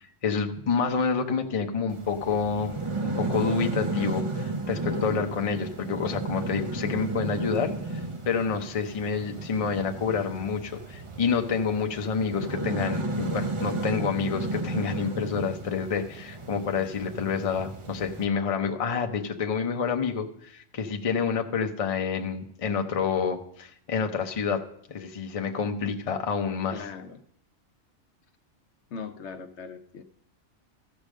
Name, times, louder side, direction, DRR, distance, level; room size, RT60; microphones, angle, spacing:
voice 1, 0.0-2.8 3.0-26.8, left 5 dB, 35° left, 4 dB, 0.7 m, -28 dB
sound 1, 1.9-18.2, right 2 dB, 30° right, 0.7 m, -33 dB
voice 2, 26.7-27.2 28.9-30.0, left 5 dB, 65° left, 8 dB, 0.9 m, -39 dB
14.5 x 5.1 x 6.3 m, 0.69 s
omnidirectional pair, 1.3 m